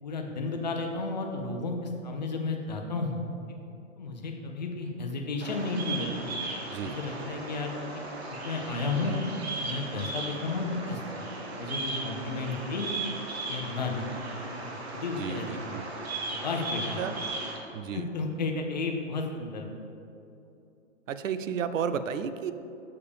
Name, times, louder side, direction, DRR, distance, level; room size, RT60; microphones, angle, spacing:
voice 1, 0.0-3.2 4.0-6.3 6.8-7.7 8.3-9.1 9.6-12.9 13.5-14.1 14.6-14.7 14.9-15.7 16.3-17.0 17.9-19.7, left 3 dB, 35° left, 2 dB, 0.6 m, -33 dB
Bird vocalization bird call bird song, 5.4-17.6, right 2 dB, 55° right, 1.2 m, -37 dB
voice 2, 15.2-15.8 17.0-17.2 17.7-18.1 21.1-22.5, right 7 dB, 90° right, 12 dB, 0.6 m, -32 dB
6.9 x 6.9 x 3.4 m, 2.7 s
hypercardioid pair, 175°, 38 cm